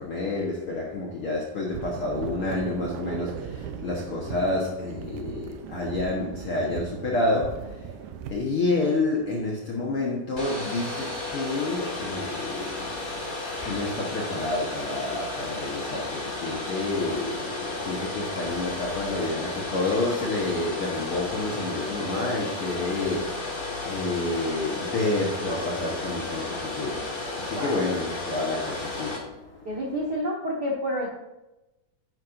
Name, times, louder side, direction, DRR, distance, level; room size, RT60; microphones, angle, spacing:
voice 1, 0.0-7.9 8.3-13.0 13.6-29.8, left 2 dB, 60° left, 1.5 m, -29 dB
sound 1, 1.7-8.4, right 8 dB, 90° right, 1.7 m, -38 dB
Domestic sounds home sounds, 10.3-29.2, left 2 dB, 35° left, 0.7 m, -33 dB
voice 2, 29.6-31.1, equal, 60° right, 1.0 m, -29 dB
10.0 x 9.9 x 2.6 m
omnidirectional pair, 4.2 m